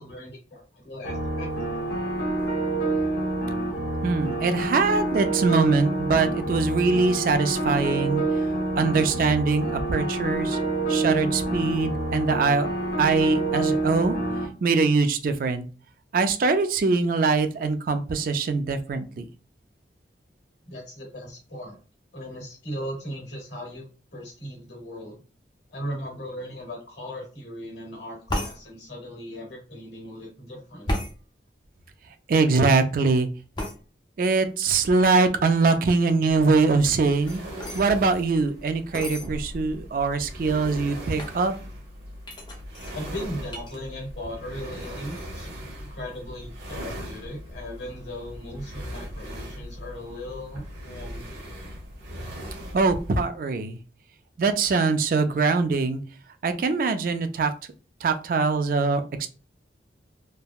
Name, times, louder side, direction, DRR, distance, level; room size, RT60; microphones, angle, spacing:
voice 1, 0.0-1.5 20.6-21.8 22.1-25.2 25.7-30.9 42.9-45.5 45.8-51.5, equal, 70° left, -1 dB, 1.4 m, -38 dB
sound 1, 1.0-14.5, right 2 dB, 55° left, 0.8 m, -27 dB
voice 2, 4.0-8.2 8.8-10.6 10.9-12.7 13.0-14.2 14.6-15.7 16.1-19.2 32.3-33.3 34.2-37.4 37.7-41.5 52.7-53.8 54.4-56.0 56.4-57.5 58.0-59.3, right 4 dB, 50° right, 8 dB, 0.3 m, -23 dB
sound 2, 28.3-28.6 30.9-31.1 33.5-33.8 36.8-37.9 38.9-39.3 40.0-40.1 40.2-40.6 41.2-41.4 42.2-43.7 44.1-44.5 44.8-45.3, left 1 dB, 25° left, 0.5 m, -33 dB
sound 3, 36.3-53.3, equal, 75° right, 1.0 m, -39 dB
3.3 x 2.1 x 2.3 m, 0.36 s
head